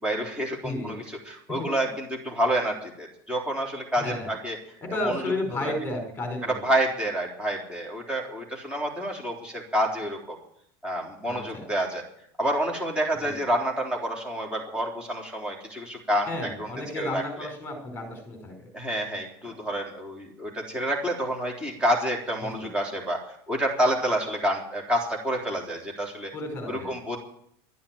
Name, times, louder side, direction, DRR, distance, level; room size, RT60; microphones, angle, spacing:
voice 1, 0.0-4.6 5.0-5.2 5.6-5.7 6.6-10.4 10.8-12.0 12.4-17.2 18.7-26.3 26.7-27.2, right 1 dB, 10° right, -1 dB, 3.6 m, -28 dB
voice 2, 0.6-1.0 1.6-1.7 4.0-4.3 4.8-6.7 11.2-11.6 13.2-13.4 16.3-18.7 22.5-22.7 26.3-26.9, left 1 dB, 20° left, 4 dB, 4.8 m, -32 dB
12.5 x 10.5 x 9.0 m, 0.69 s
supercardioid pair, 150°, 12 cm